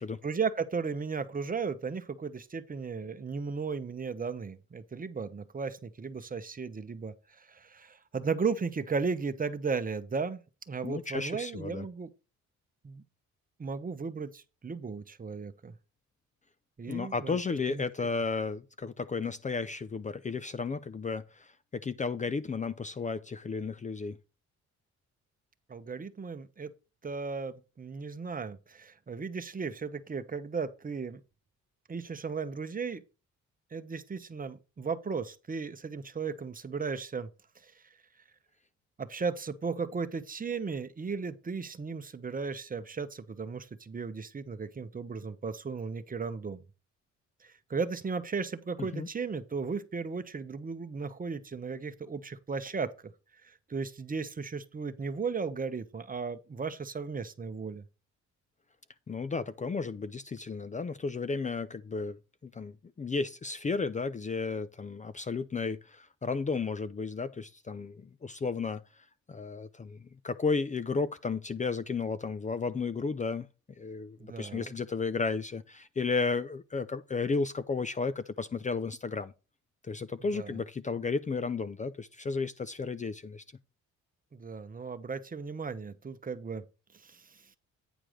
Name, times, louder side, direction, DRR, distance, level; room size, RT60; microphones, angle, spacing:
voice 1, 0.2-10.4 10.7-12.1 12.8-13.0 13.6-15.7 16.8-17.4 17.7-17.8 25.7-26.7 27.0-31.2 31.9-33.0 33.7-37.3 37.6-37.8 39.0-46.6 47.4-52.9 53.4-57.8 74.2-74.7 80.3-80.6 84.3-86.6 86.9-87.4, right 5 dB, 30° right, 0.9 m, -35 dB
voice 2, 10.8-11.9 16.8-24.2 48.8-49.1 59.1-73.5 73.8-79.3 79.8-83.4, left 4 dB, 25° left, 0.5 m, -33 dB
9.2 x 4.6 x 5.0 m
cardioid pair, 90°, 30 cm